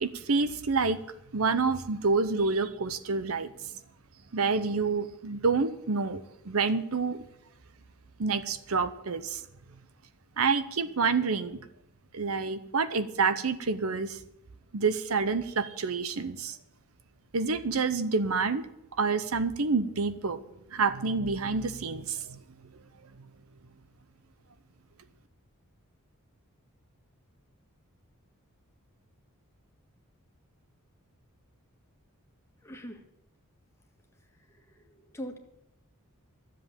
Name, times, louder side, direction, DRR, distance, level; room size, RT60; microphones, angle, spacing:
voice 1, 0.0-1.0 1.3-3.5 4.3-7.2 8.2-9.4 10.4-11.6 12.1-14.2 14.7-16.6 17.3-18.7 19.0-20.4 20.7-22.4, right 4 dB, 70° right, 13 dB, 0.8 m, -28 dB
voice 2, 32.6-33.0 34.7-35.4, equal, 10° left, 3 dB, 1.8 m, -42 dB
13.0 x 7.6 x 8.8 m, 0.82 s
head